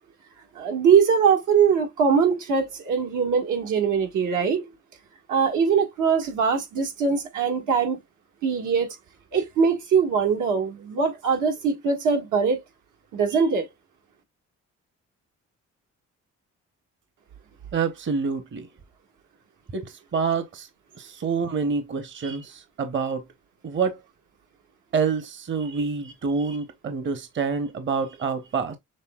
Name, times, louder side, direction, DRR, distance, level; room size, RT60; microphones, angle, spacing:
voice 1, 0.6-4.6 5.3-8.0 8.4-9.0 9.3-12.6 13.1-13.7 22.2-22.4, right 6 dB, 80° right, 1.8 m, -22 dB
voice 2, 17.7-18.7 19.7-20.7 21.0-23.2 23.6-24.0 24.9-28.8, right 5 dB, 40° right, 0.9 m, -27 dB
6.6 x 3.5 x 2.3 m
cardioid pair, 90°, 30 cm